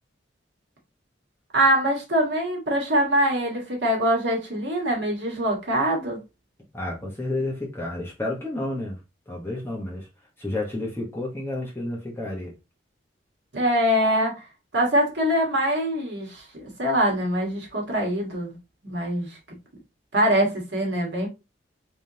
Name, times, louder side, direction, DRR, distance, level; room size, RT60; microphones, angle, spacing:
voice 1, 1.5-6.2 13.5-14.4 14.7-18.5 18.8-19.4 20.1-21.3, equal, 60° right, 1.4 m, -23 dB
voice 2, 6.7-9.0 9.3-10.1 10.4-12.5, left 2 dB, 15° left, 1.0 m, -30 dB
3.5 x 3.4 x 2.8 m
head